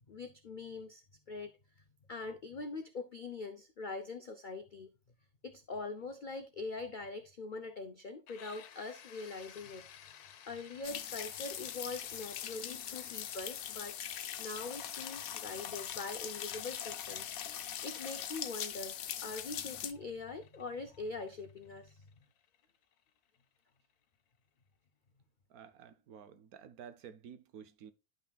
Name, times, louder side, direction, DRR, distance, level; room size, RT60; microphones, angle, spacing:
voice 1, 0.1-1.5 2.1-4.9 5.4-10.2 10.5-14.0 14.4-17.4 17.8-22.1, left 3 dB, 55° left, 0.5 m, -43 dB
sound 1, 8.3-23.9, left 9 dB, 90° left, 1.3 m, -59 dB
sound 2, 10.8-19.9, left 10 dB, 70° left, 1.1 m, -41 dB
voice 2, 25.5-27.9, right 8 dB, 75° right, 1.2 m, -52 dB
11.0 x 5.8 x 2.3 m
omnidirectional pair, 1.6 m